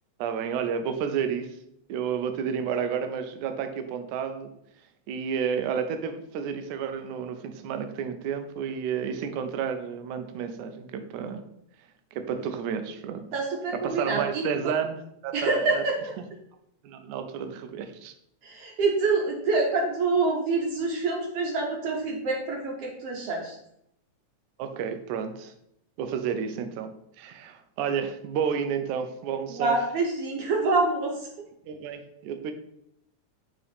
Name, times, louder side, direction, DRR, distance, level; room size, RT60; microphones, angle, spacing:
voice 1, 0.2-1.6 1.9-4.5 5.1-11.4 12.1-13.3 13.8-15.8 16.8-18.1 24.6-25.5 26.0-26.9 27.2-29.8 31.7-32.5, right 7 dB, 85° right, 8 dB, 2.1 m, -31 dB
voice 2, 13.3-14.4 15.3-16.0 18.4-23.6 29.5-31.3, right 3 dB, 60° right, 0 dB, 1.8 m, -26 dB
7.0 x 3.8 x 5.1 m, 0.76 s
omnidirectional pair, 3.4 m